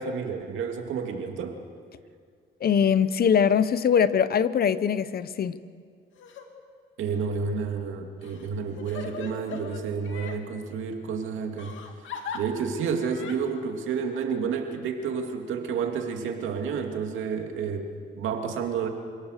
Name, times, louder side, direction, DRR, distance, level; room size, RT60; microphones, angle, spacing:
voice 1, 0.0-1.6 7.0-11.8 12.3-17.9 18.1-18.9, right 6 dB, 80° right, 4 dB, 2.5 m, -30 dB
voice 2, 2.6-5.5, left 7 dB, 50° left, 15 dB, 0.9 m, -22 dB
Crying sobbing, 6.1-6.5 7.1-7.2 8.2-10.4 11.6-12.4 13.1-13.4, left 6 dB, 75° left, 2.4 m, -39 dB
27.0 x 17.5 x 6.6 m, 2.1 s
cardioid pair, 90°, 20 cm